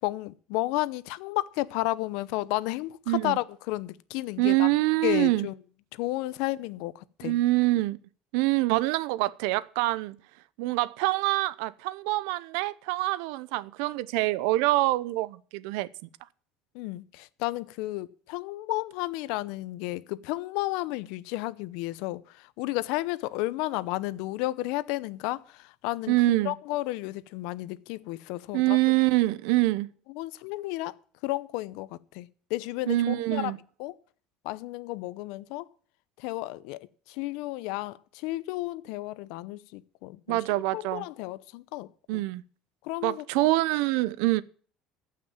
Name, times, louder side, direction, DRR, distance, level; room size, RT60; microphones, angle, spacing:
voice 1, 0.0-4.7 5.0-5.6 5.9-7.3 16.7-26.2 26.4-28.8 30.1-31.0 31.2-33.5 33.8-34.0 34.4-35.7 36.2-40.4 40.7-42.2 42.8-43.5, left 18 dB, 75° left, 0.6 m, -32 dB
voice 2, 3.1-3.4 4.4-5.5 7.2-8.0 8.3-10.2 10.6-15.9 26.1-26.5 28.5-29.9 32.9-33.6 40.3-41.1 42.1-42.4 43.0-44.4, right 18 dB, 85° right, 0.6 m, -25 dB
14.5 x 5.9 x 8.7 m
cardioid pair, 140°, 0 cm